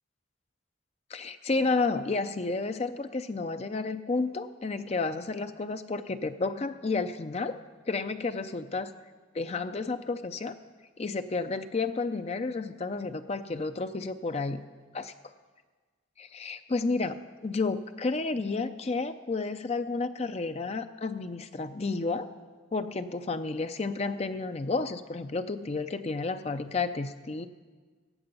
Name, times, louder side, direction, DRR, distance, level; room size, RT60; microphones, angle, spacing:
voice 1, 1.1-7.6 7.9-8.9 9.3-10.5 11.0-14.6 14.9-15.1 16.2-17.2 17.4-22.3 22.7-27.5, left 3 dB, 35° left, 9 dB, 0.5 m, -31 dB
16.0 x 7.9 x 5.4 m, 1.4 s
head